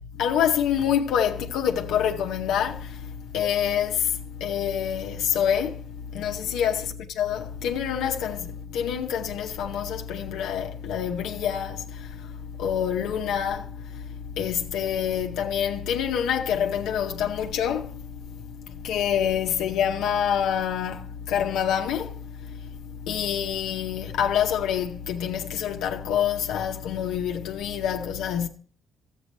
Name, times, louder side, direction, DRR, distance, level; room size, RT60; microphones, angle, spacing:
voice 1, 0.2-4.1 4.4-5.8 6.1-12.1 12.6-14.0 14.4-18.0 18.7-22.1 22.5-22.6 23.0-28.5, left 9 dB, 90° left, 0.7 m, -26 dB
12.5 x 8.2 x 3.2 m
cardioid pair, 90°, 0 cm